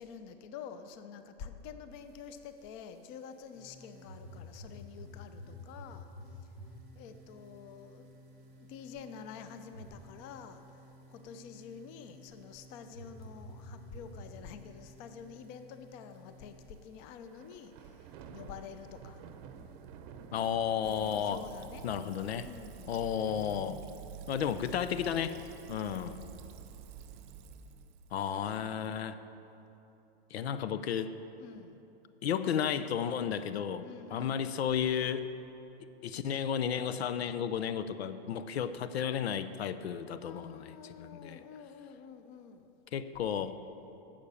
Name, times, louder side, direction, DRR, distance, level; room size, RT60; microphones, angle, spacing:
voice 1, 0.0-6.1 6.9-8.1 8.6-10.8 11.1-19.2 20.8-23.0 25.9-26.6 28.3-29.1 31.4-31.8 33.8-34.6 40.2-42.8, left 7 dB, 35° left, 9 dB, 0.7 m, -48 dB
sound 1, 2.6-2.7 3.0-3.3 4.0-4.2 4.8-4.9 5.5-5.6 5.9-6.0 6.3-6.4 7.5-7.7 8.1-8.2 9.1-9.2 9.8-10.2 10.6-10.7 11.3-11.9 13.0-13.3 13.6-13.7 14.0-14.1 14.2-14.3 15.0-15.1 15.4-15.5 16.1-21.2, right 6 dB, 40° right, 0.8 m, -52 dB
sound 2, 3.5-16.7, left 1 dB, 70° left, 1.7 m, -51 dB
voice 2, 20.3-21.4 21.8-22.5 22.9-23.8 24.3-25.4 25.7-26.2 28.1-29.2 30.3-31.2 32.2-35.3 36.0-41.4 42.9-43.6, left 8 dB, 90° left, 12 dB, 0.7 m, -33 dB
Fill (with liquid), 20.8-28.5, right 7 dB, 20° right, 0.3 m, -49 dB
12.0 x 7.3 x 6.9 m, 2.9 s
hypercardioid pair, 145°, 31 cm